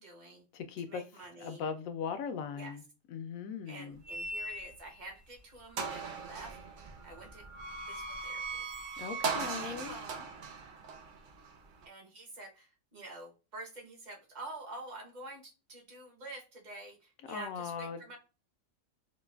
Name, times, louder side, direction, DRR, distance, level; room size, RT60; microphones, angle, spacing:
voice 1, 0.0-0.4 0.9-1.6 2.6-2.7 3.7-6.6 7.0-7.4 7.9-8.7 9.4-10.3 11.8-18.2, right 2 dB, 35° right, 0.9 m, -48 dB
voice 2, 0.5-1.1 1.4-4.0 9.0-10.0 17.2-18.0, left 6 dB, 75° left, 1.0 m, -39 dB
sound 1, 4.0-5.0 5.4-5.5 5.8-11.9, right 4 dB, 80° right, 0.4 m, -39 dB
4.1 x 2.2 x 2.2 m
omnidirectional pair, 1.5 m